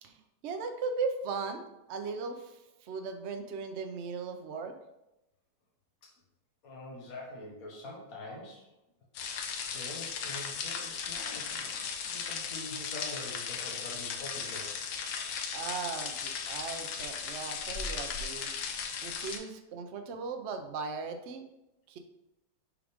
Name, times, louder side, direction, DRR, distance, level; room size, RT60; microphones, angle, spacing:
voice 1, 0.0-4.7 15.5-18.5 19.0-21.4 21.9-22.0, right 4 dB, 80° right, 5 dB, 0.6 m, -38 dB
voice 2, 6.6-8.6 9.2-9.3 9.7-14.7, left 2 dB, 50° left, -2 dB, 1.8 m, -45 dB
sound 1, 9.1-19.4, left 6 dB, 90° left, 1.5 m, -37 dB
6.9 x 4.9 x 3.5 m, 0.90 s
omnidirectional pair, 2.0 m